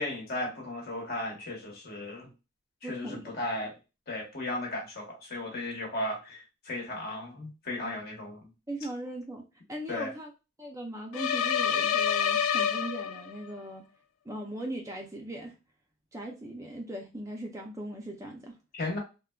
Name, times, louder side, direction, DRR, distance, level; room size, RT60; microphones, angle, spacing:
voice 1, 0.0-2.3 2.9-3.7 4.1-8.5 9.9-10.1 18.7-19.0, left 1 dB, 50° left, 1.0 m, -35 dB
voice 2, 2.8-3.3 8.7-9.4 9.7-10.3 10.6-13.8 14.3-15.5 16.1-18.6, right 1 dB, 15° right, 0.4 m, -39 dB
sound 1, 11.1-13.5, left 8 dB, 85° left, 0.3 m, -27 dB
3.6 x 2.1 x 2.2 m
head